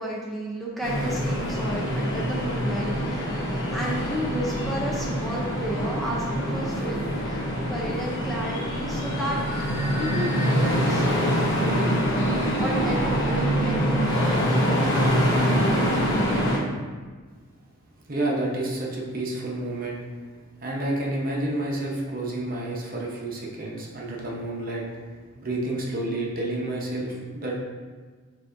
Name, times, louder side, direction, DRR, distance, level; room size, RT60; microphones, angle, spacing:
voice 1, 0.0-15.0, equal, ahead, -6 dB, 0.4 m, -33 dB
sound 1, 0.8-16.6, equal, 60° left, 0.9 m, -25 dB
voice 2, 18.1-20.0 20.6-24.8 25.4-27.6, right 1 dB, 45° right, -2 dB, 0.7 m, -29 dB
6.6 x 2.6 x 2.5 m, 1.5 s
head